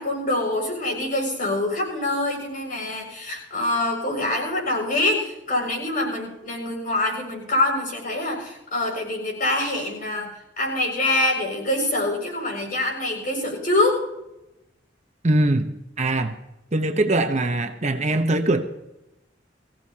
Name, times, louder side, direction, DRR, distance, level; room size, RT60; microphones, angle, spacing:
voice 1, 0.0-14.1, left 2 dB, 50° left, -1 dB, 7.1 m, -25 dB
voice 2, 15.2-16.4 16.7-18.7, right 2 dB, 35° right, 6 dB, 0.9 m, -22 dB
23.0 x 16.0 x 2.9 m, 0.92 s
head